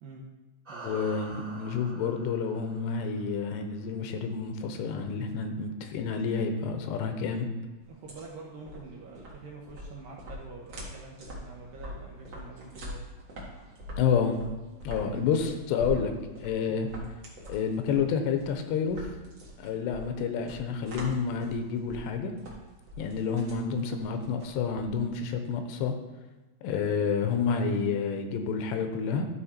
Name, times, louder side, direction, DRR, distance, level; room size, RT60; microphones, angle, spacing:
sound 1, 0.6-3.4, right 2 dB, 25° right, 1.9 m, -46 dB
voice 1, 0.8-7.5 14.0-14.4 14.8-16.1 16.4-16.9 17.5-19.1 19.6-22.3 23.0-25.9 26.6-29.2, left 6 dB, 85° left, 6 dB, 2.9 m, -29 dB
sound 2, 7.8-25.3, right 1 dB, 50° right, 1.4 m, -43 dB
voice 2, 7.9-13.0 14.9-16.0 16.7-16.8, right 3 dB, 75° right, -2 dB, 2.2 m, -46 dB
12.5 x 4.8 x 4.3 m, 1.2 s
omnidirectional pair, 5.0 m